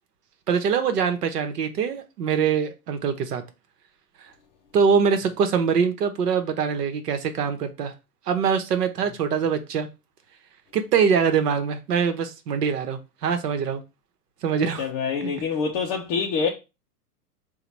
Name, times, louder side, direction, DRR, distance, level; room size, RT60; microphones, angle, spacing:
voice 1, 0.5-3.4 4.7-7.9 8.3-9.9 10.7-13.8 14.4-14.9 15.2-15.3, right 6 dB, 70° right, 1.0 m, -23 dB
voice 2, 14.8-16.5, left 5 dB, 25° left, 0.4 m, -25 dB
3.9 x 2.3 x 4.4 m
hypercardioid pair, 115°, 48 cm